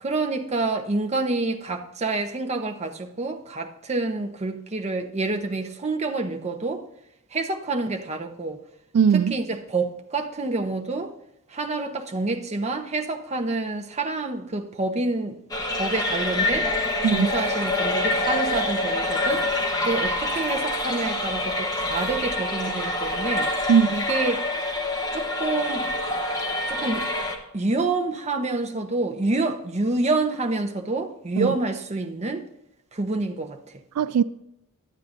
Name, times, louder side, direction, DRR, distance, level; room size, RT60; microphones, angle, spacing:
voice 1, 0.0-6.8 7.3-8.6 9.1-11.1 11.5-15.4 15.7-16.7 17.1-24.5 25.1-25.9 26.7-27.1 27.5-32.5 32.9-33.8, right 3 dB, 30° right, 0.7 m, -28 dB
voice 2, 8.9-9.3 17.0-17.3 23.7-23.9 31.4-31.5 34.0-34.2, right 7 dB, 85° right, 0.3 m, -19 dB
sound 1, 15.5-27.4, left 1 dB, 20° left, 1.0 m, -26 dB
12.0 x 8.3 x 2.5 m
head